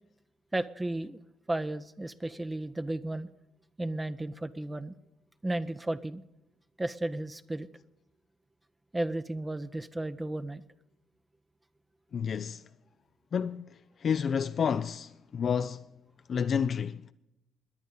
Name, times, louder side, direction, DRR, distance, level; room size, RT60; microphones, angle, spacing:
voice 1, 0.5-1.2 1.5-3.3 3.8-5.0 5.4-6.2 6.8-7.7 8.9-10.6, right 1 dB, 15° right, 0.7 m, -34 dB
voice 2, 12.1-12.6 13.3-15.8 16.3-17.1, left 7 dB, 50° left, 0.4 m, -30 dB
21.5 x 10.5 x 3.9 m
hypercardioid pair, 50°, 0 cm